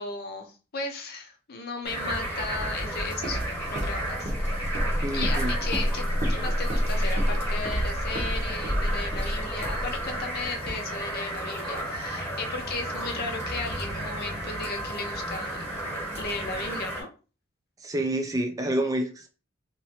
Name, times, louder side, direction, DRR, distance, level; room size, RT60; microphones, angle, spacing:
voice 1, 0.0-3.4 3.7-4.7 5.1-15.7 16.2-17.1, left 3 dB, 50° left, 5 dB, 0.5 m, -35 dB
sound 1, 1.8-17.0, right 1 dB, 10° left, 1.1 m, -33 dB
Walk footsteps, 2.6-10.5, equal, 35° right, 0.7 m, -29 dB
voice 2, 5.0-5.6 17.8-19.3, right 1 dB, 15° right, 4 dB, 0.3 m, -28 dB
2.9 x 2.5 x 2.8 m, 0.35 s
head